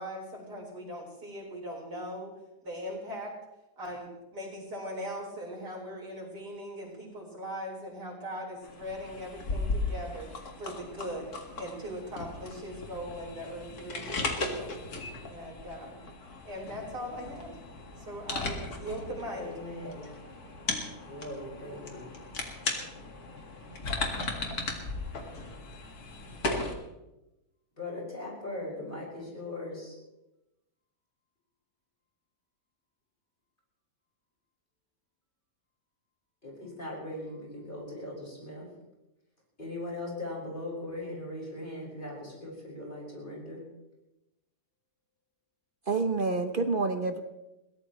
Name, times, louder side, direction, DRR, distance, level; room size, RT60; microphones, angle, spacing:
voice 1, 0.0-2.3 2.6-3.3 3.8-10.3 10.6-14.7 15.3-16.0 16.4-17.6 18.0-19.5, equal, 80° right, -1 dB, 4.9 m, -40 dB
sound 1, 8.6-26.7, left 3 dB, 65° left, 2.4 m, -37 dB
voice 2, 19.4-20.1 21.0-22.1 27.8-30.0 36.4-38.7 39.6-43.6, left 1 dB, 30° left, -3 dB, 5.6 m, -39 dB
voice 3, 45.9-47.2, right 3 dB, 40° right, 7 dB, 0.8 m, -28 dB
22.0 x 16.5 x 3.1 m, 0.96 s
omnidirectional pair, 1.7 m